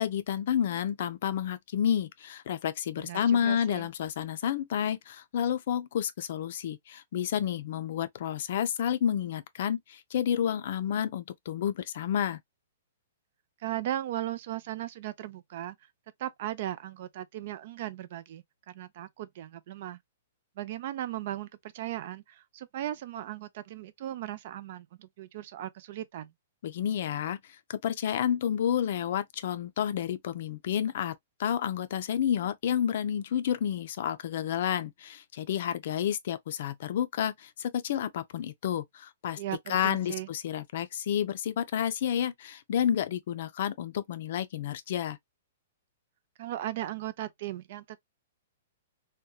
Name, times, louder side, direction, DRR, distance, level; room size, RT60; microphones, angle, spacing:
voice 1, 0.0-12.4 26.6-27.4 27.7-31.1 31.4-39.4 39.7-45.2, left 9 dB, 60° left, 0.4 m, -30 dB
voice 2, 3.0-3.9 13.6-15.8 16.2-20.0 20.6-21.5 21.7-26.3 39.4-40.3 46.4-48.0, right 13 dB, 55° right, 0.3 m, -37 dB
2.7 x 2.1 x 2.2 m
hypercardioid pair, 140°, 0 cm